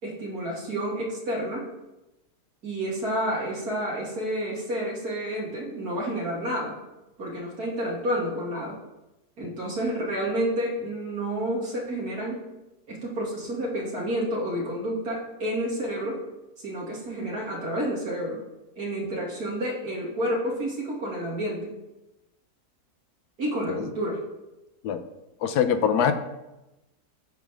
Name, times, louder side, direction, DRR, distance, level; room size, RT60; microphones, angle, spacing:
voice 1, 0.0-1.7 2.6-6.8 7.2-8.8 9.4-12.5 12.9-16.2 16.6-18.4 18.7-21.8 23.4-24.2, right 1 dB, 75° right, -4 dB, 2.8 m, -30 dB
voice 2, 25.4-26.1, left 8 dB, 80° left, 8 dB, 1.2 m, -23 dB
9.9 x 3.6 x 6.1 m, 0.98 s
omnidirectional pair, 1.7 m